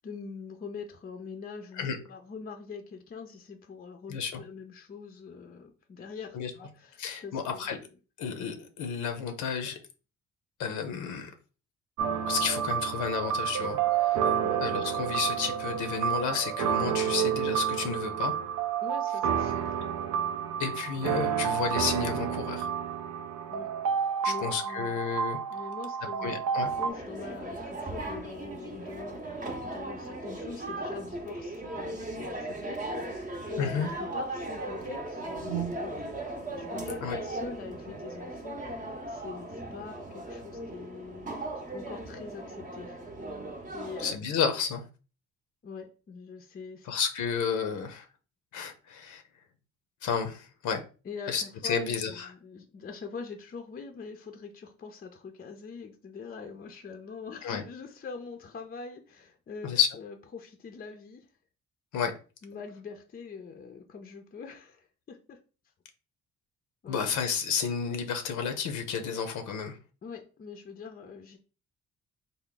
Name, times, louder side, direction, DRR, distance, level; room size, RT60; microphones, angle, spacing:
voice 1, 0.0-7.8 14.4-14.6 18.8-19.9 20.9-21.1 23.5-23.7 24.0-25.2 25.5-41.3 41.7-43.0 43.7-44.4 45.6-46.9 51.0-61.3 62.4-65.4 66.8-67.0 70.0-71.4, left 5 dB, 30° left, 0.5 m, -44 dB
voice 2, 4.1-4.4 6.3-6.5 7.0-7.8 8.2-9.8 10.6-11.3 12.3-14.2 14.6-18.3 20.6-22.7 24.2-25.4 26.2-26.7 33.6-33.9 37.0-37.2 44.0-44.8 46.9-48.1 48.5-49.2 50.0-50.8 51.3-52.3 57.4-57.6 59.6-59.9 61.9-62.1 66.9-69.8, left 6 dB, 75° left, 0.6 m, -31 dB
sound 1, 12.0-26.9, right 8 dB, 75° right, 0.5 m, -30 dB
sound 2, 26.6-44.1, right 2 dB, 25° right, 0.7 m, -37 dB
3.4 x 2.1 x 3.7 m
cardioid pair, 90°, 30 cm